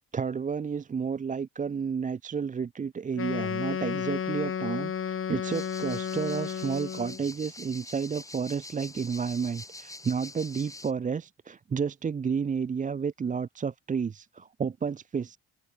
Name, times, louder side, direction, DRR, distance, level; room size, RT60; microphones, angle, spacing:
voice 1, 0.1-15.4, right 6 dB, 25° right, 0.6 m, -31 dB
Wind instrument woodwind instrument, 3.1-7.2, left 8 dB, 45° left, 1.7 m, -32 dB
sound 1, 5.5-10.9, left 2 dB, 10° left, 1.5 m, -45 dB
open air
cardioid pair, 90°, 30 cm